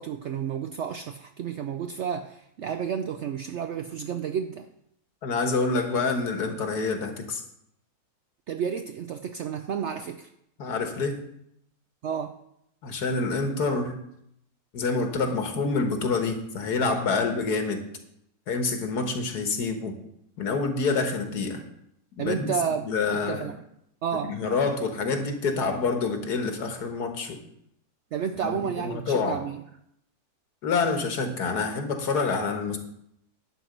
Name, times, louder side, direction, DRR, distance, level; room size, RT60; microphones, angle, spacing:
voice 1, 0.0-4.7 8.5-10.3 12.0-12.4 22.2-22.9 23.1-23.6 24.0-24.4 28.1-29.6, right 7 dB, 75° right, 8 dB, 0.6 m, -31 dB
voice 2, 5.2-7.4 10.6-11.2 12.8-13.9 14.7-17.8 18.5-19.9 20.4-21.6 22.2-22.5 22.9-23.5 24.3-27.4 28.4-29.4 30.6-32.8, left 4 dB, 80° left, 5 dB, 1.8 m, -27 dB
11.5 x 4.6 x 7.8 m, 0.77 s
omnidirectional pair, 1.7 m